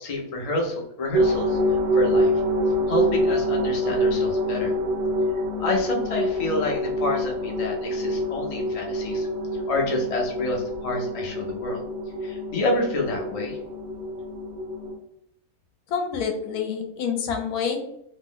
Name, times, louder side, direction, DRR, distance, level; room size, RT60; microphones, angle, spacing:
voice 1, 0.0-1.6 1.9-2.3 2.9-4.7 5.6-9.3 9.7-11.8 12.2-13.6, left 2 dB, 60° left, 0 dB, 0.3 m, -28 dB
sound 1, 1.1-14.9, equal, 90° right, 1.2 m, -26 dB
voice 2, 15.9-17.8, left 6 dB, 80° left, 4 dB, 1.1 m, -27 dB
2.9 x 2.0 x 3.7 m, 0.75 s
omnidirectional pair, 1.6 m